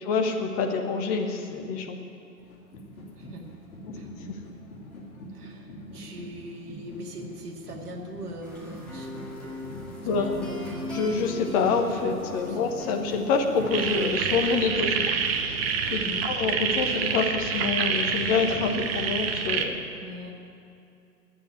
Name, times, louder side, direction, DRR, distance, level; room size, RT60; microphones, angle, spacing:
voice 1, 0.1-2.0 3.8-3.9 10.0-10.5 10.8-14.9 15.9-19.8, left 4 dB, 20° left, 4 dB, 1.0 m, -26 dB
sound 1, 2.4-19.6, left 1 dB, 55° left, 3.1 m, -45 dB
voice 2, 3.1-3.4 3.9-4.1 5.3-9.6 10.0-10.7 12.4-12.8 14.9-15.0 16.0-16.3 20.0-20.3, right 1 dB, 65° right, 0 dB, 2.3 m, -41 dB
sound 2, 8.4-14.5, equal, ahead, 1.6 m, -39 dB
sound 3, 13.7-19.6, right 6 dB, 35° right, 1.0 m, -27 dB
9.8 x 9.2 x 9.9 m, 2.6 s
figure-of-eight pair, 125°, 49 cm